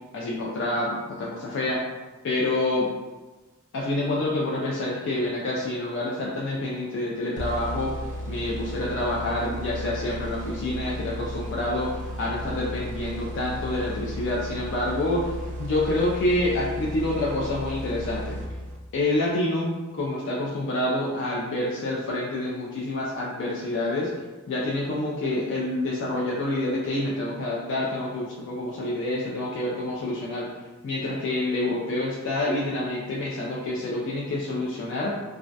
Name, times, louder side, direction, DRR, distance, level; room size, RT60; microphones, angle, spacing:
voice 1, 0.1-1.8 2.2-2.9 3.7-7.9 8.3-18.4 18.9-24.1 24.5-30.5 30.8-35.1, left 1 dB, 60° left, -4 dB, 0.3 m, -27 dB
sound 1, 7.4-19.0, equal, 35° right, 0.3 m, -34 dB
2.3 x 2.1 x 2.5 m, 1.2 s
head